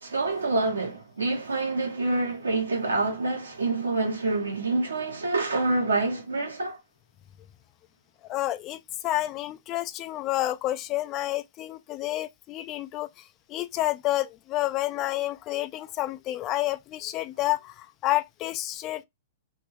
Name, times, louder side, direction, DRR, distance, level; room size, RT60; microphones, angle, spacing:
voice 1, 0.0-6.8, right 3 dB, 85° right, 1.0 m, -27 dB
voice 2, 8.2-13.1 13.5-19.0, left 15 dB, 35° left, 0.4 m, -29 dB
2.6 x 2.6 x 3.1 m
hypercardioid pair, 115°, 0 cm